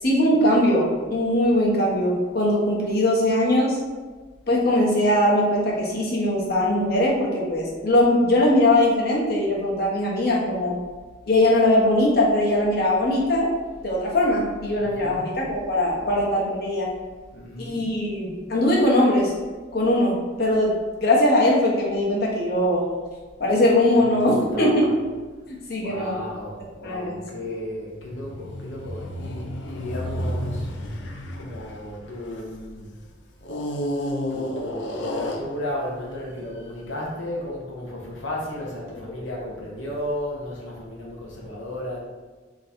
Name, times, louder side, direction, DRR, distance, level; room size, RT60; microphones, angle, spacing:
voice 1, 0.0-3.8 4.5-10.8 11.3-13.5 13.8-16.9 17.6-19.3 19.7-22.8 23.4-24.9 25.7-26.2 26.8-27.6 39.1-39.2, left 1 dB, 55° left, -3 dB, 1.1 m, -21 dB
voice 2, 14.8-15.5 17.3-17.9 23.9-25.0 25.8-30.7 31.4-32.9 34.3-42.0, left 1 dB, 85° left, -3 dB, 1.2 m, -34 dB
sound 1, 28.0-32.7 33.4-36.0 36.6-36.8, equal, 70° left, 0.5 m, -31 dB
3.8 x 3.1 x 4.2 m, 1.3 s
head